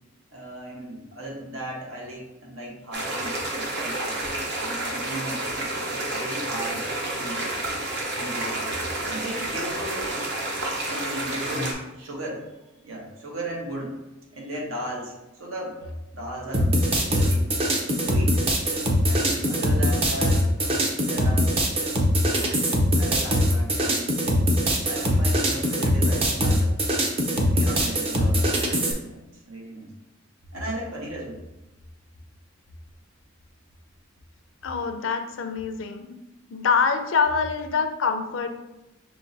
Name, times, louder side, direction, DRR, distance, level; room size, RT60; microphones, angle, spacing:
voice 1, 0.3-4.3 4.6-6.8 7.1-7.5 8.1-8.7 9.0-10.2 10.9-12.5 12.7-14.0 14.3-15.8 16.1-17.6 18.0-18.4 19.0-21.6 22.9-26.8 27.5-28.7 29.0-29.9 30.5-31.4, right 1 dB, 75° right, -2 dB, 1.1 m, -36 dB
sound 1, 2.9-11.7, right 2 dB, 55° right, 0.9 m, -30 dB
sound 2, 16.5-28.9, equal, 30° right, 0.6 m, -22 dB
voice 2, 34.6-36.2 36.5-38.5, left 5 dB, 65° left, 7 dB, 0.5 m, -25 dB
5.8 x 3.0 x 2.6 m, 0.97 s
head